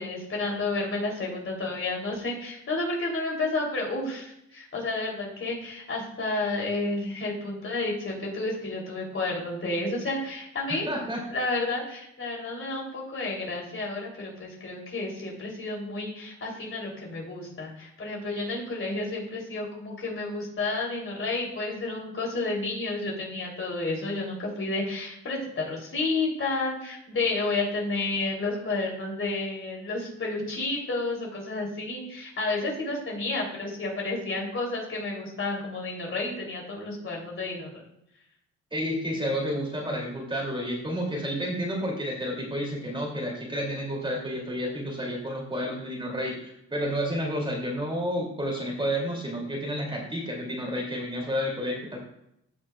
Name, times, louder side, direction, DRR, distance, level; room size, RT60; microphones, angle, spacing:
voice 1, 0.0-10.9 11.3-37.7, left 2 dB, 45° left, -2 dB, 3.4 m, -31 dB
voice 2, 10.9-11.2 38.7-52.0, equal, 15° right, -1 dB, 2.8 m, -30 dB
15.5 x 6.1 x 2.4 m, 0.78 s
cardioid pair, 90°, 30 cm